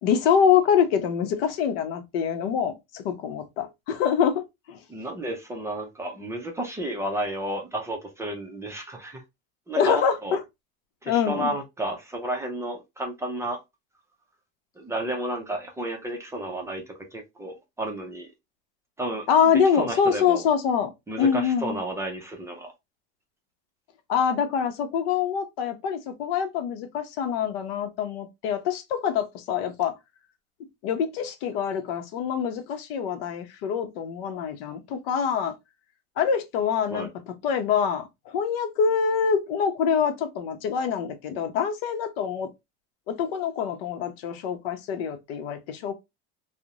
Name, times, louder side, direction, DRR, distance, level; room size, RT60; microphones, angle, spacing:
voice 1, 0.0-4.8 9.7-10.4 11.1-11.5 19.3-20.9 21.2-21.8 24.1-29.9 30.8-35.5 36.2-37.1 37.4-42.5 43.1-45.9, left 7 dB, 80° left, 0.7 m, -25 dB
voice 2, 4.9-9.2 9.7-10.4 11.0-13.6 14.8-18.3 19.0-19.2 19.7-20.4 21.1-22.7 36.9-37.1, right 1 dB, 10° right, 0.4 m, -32 dB
2.4 x 2.0 x 2.8 m
cardioid pair, 150°, 29 cm